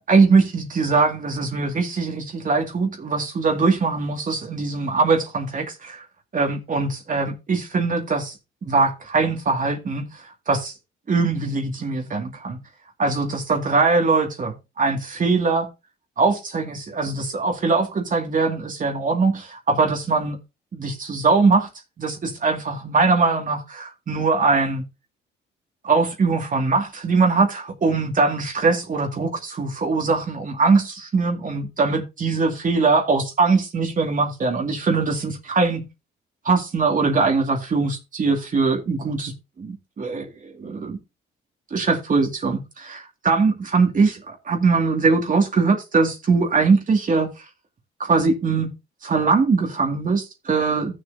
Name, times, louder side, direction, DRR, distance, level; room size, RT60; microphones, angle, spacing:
voice 1, 0.1-6.0 6.3-8.3 8.6-10.7 11.1-12.6 13.0-15.7 16.2-20.4 20.7-21.7 22.0-24.9 25.8-35.9 36.4-41.0 41.7-47.3 48.0-48.7 49.0-50.9, right 4 dB, 40° right, 2.3 m, -21 dB
15.0 x 6.9 x 2.8 m
cardioid pair, 90°, 20 cm